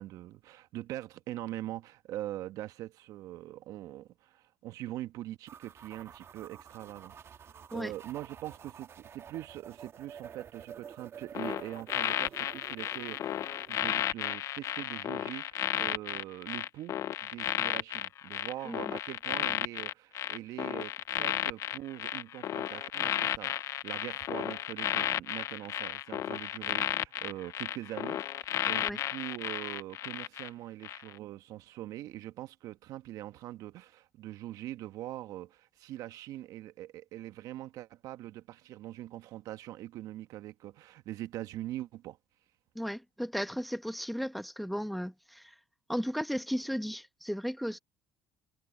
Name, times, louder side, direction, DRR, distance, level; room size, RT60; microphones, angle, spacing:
voice 1, 0.0-42.2, right 14 dB, 70° right, 1.3 m, -43 dB
sound 1, 5.5-14.0, right 7 dB, 45° right, 1.5 m, -50 dB
sound 2, 11.3-30.5 30.8-31.1, left 11 dB, 55° left, 0.6 m, -33 dB
voice 2, 42.7-45.5 45.9-47.8, equal, ahead, 1.1 m, -35 dB
supercardioid pair, 75°, 6 cm